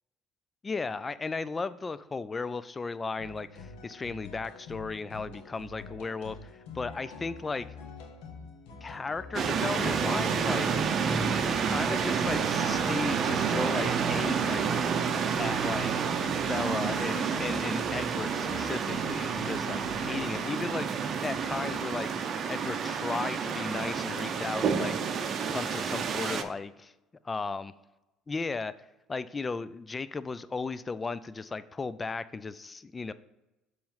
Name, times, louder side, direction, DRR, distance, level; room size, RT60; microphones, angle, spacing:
voice 1, 0.6-7.7 8.8-10.7 11.5-14.8 15.4-16.1 16.5-20.9 21.2-25.2 25.5-26.9 27.3-27.7 28.3-28.7 29.1-33.1, left 4 dB, 25° left, 15 dB, 0.3 m, -35 dB
sound 1, 3.2-20.3, left 3 dB, 75° left, 1.1 m, -46 dB
sound 2, 9.3-26.4, right 6 dB, 45° right, 0.6 m, -29 dB
6.9 x 3.2 x 5.6 m, 0.99 s
hypercardioid pair, 75°, 0 cm